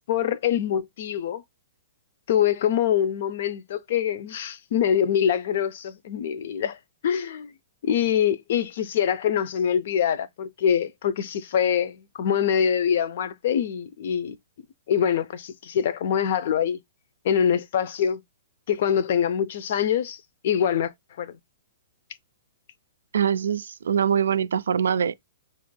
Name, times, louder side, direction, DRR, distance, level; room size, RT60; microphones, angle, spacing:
voice 1, 0.1-1.4 2.3-6.8 7.0-7.5 7.8-14.4 14.9-16.8 17.2-18.2 18.7-20.2 20.4-20.9 21.2-21.4, left 8 dB, 55° left, 0.5 m, -24 dB
voice 2, 23.1-25.1, right 8 dB, 65° right, 0.3 m, -23 dB
5.7 x 2.4 x 2.3 m
figure-of-eight pair, 115°, 0 cm